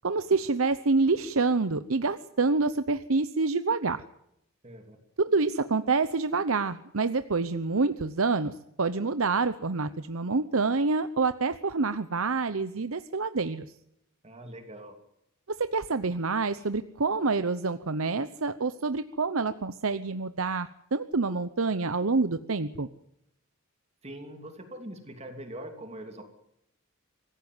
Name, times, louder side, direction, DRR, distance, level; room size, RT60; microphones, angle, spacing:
voice 1, 0.0-4.0 5.2-13.7 15.5-22.9, right 4 dB, 70° right, 12 dB, 0.9 m, -27 dB
voice 2, 4.6-5.0 14.2-14.9 24.0-26.2, right 1 dB, 30° right, 4 dB, 3.0 m, -42 dB
25.0 x 16.0 x 9.5 m, 0.79 s
head